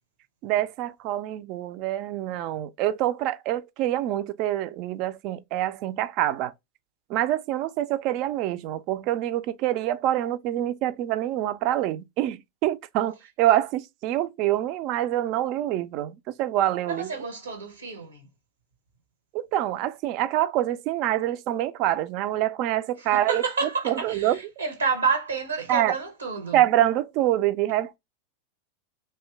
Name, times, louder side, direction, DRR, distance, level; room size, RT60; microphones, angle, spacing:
voice 1, 0.4-6.5 7.1-17.1 19.3-23.4 23.9-24.4 25.7-25.9 26.5-28.0, right 13 dB, 50° right, 0.3 m, -26 dB
voice 2, 16.9-18.3 23.0-26.6, right 5 dB, 85° right, 0.7 m, -29 dB
2.8 x 2.2 x 3.2 m
figure-of-eight pair, 90°, 0 cm